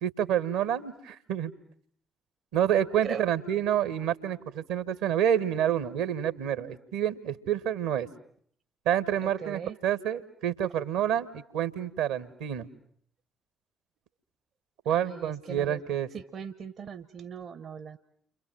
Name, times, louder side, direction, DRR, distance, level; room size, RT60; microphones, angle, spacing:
voice 1, 0.0-1.5 2.5-8.1 8.8-12.7 14.8-16.1, right 10 dB, 70° right, 16 dB, 1.4 m, -28 dB
voice 2, 9.2-9.8 14.9-15.8 16.1-18.0, right 7 dB, 50° right, 13 dB, 1.1 m, -39 dB
30.0 x 26.0 x 7.8 m, 0.64 s
figure-of-eight pair, 40°, 0 cm